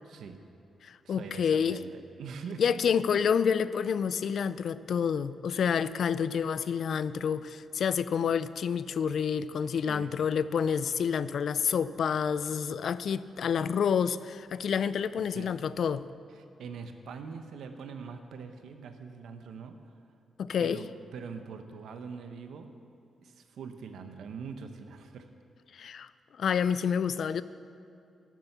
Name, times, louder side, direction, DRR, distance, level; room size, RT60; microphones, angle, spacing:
voice 1, 0.0-0.4 1.0-2.8 9.6-10.1 15.2-15.5 16.3-19.9 20.6-22.7 23.2-25.3, right 5 dB, 80° right, 7 dB, 0.9 m, -43 dB
voice 2, 0.8-1.8 2.6-16.0 20.4-20.8 25.7-26.1 26.4-27.4, left 7 dB, 60° left, 15 dB, 0.4 m, -28 dB
13.0 x 7.5 x 6.8 m, 2.5 s
wide cardioid pair, 150°, 0 cm